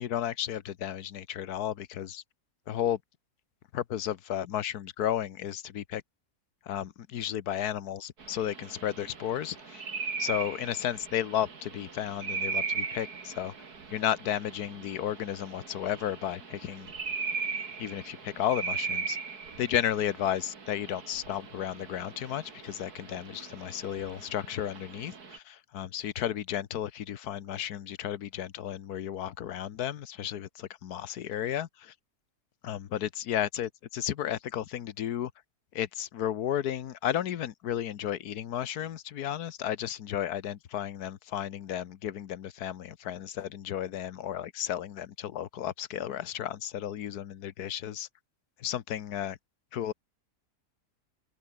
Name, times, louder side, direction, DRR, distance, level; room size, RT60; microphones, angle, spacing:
voice 1, 0.0-2.2 2.7-3.0 3.7-6.0 6.7-9.9 10.2-13.5 13.9-16.9 17.8-19.2 19.6-31.9 32.6-35.3 35.7-48.1 48.6-49.3 49.7-49.9, left 10 dB, 90° left, 1.5 m, -33 dB
sound 1, 8.2-25.4, right 5 dB, 85° right, 2.9 m, -38 dB
open air
omnidirectional pair, 1.6 m